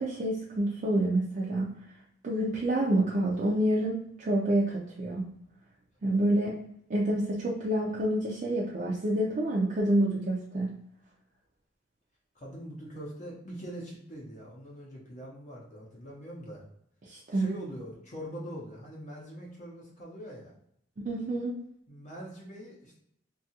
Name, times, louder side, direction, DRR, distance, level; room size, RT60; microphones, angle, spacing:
voice 1, 0.0-1.7 2.2-5.3 6.0-6.6 6.9-10.7 17.1-17.5 21.0-21.6, right 1 dB, 40° right, -4 dB, 0.4 m, -28 dB
voice 2, 12.3-16.6 17.3-20.5 21.9-23.0, equal, 35° left, -4 dB, 0.6 m, -43 dB
2.7 x 2.3 x 2.7 m, 0.74 s
head